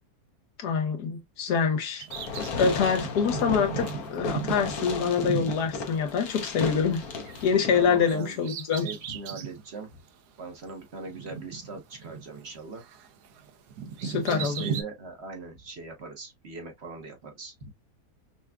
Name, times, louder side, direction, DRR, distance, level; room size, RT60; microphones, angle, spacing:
voice 1, 0.6-2.0 2.6-7.1 7.4-8.9 14.0-14.6, left 6 dB, 85° left, 1.5 m, -25 dB
Bird vocalization bird call bird song, 2.0-6.6 6.9-9.6 10.1-10.2 11.1-12.5 12.8-14.8, right 7 dB, 80° right, 1.2 m, -37 dB
Fireworks, 2.1-8.1, left 5 dB, 70° left, 1.2 m, -35 dB
voice 2, 7.7-8.4 8.8-9.9 10.4-12.8 14.3-17.7, right 3 dB, 50° right, 1.1 m, -40 dB
5.9 x 2.3 x 2.2 m
omnidirectional pair, 1.7 m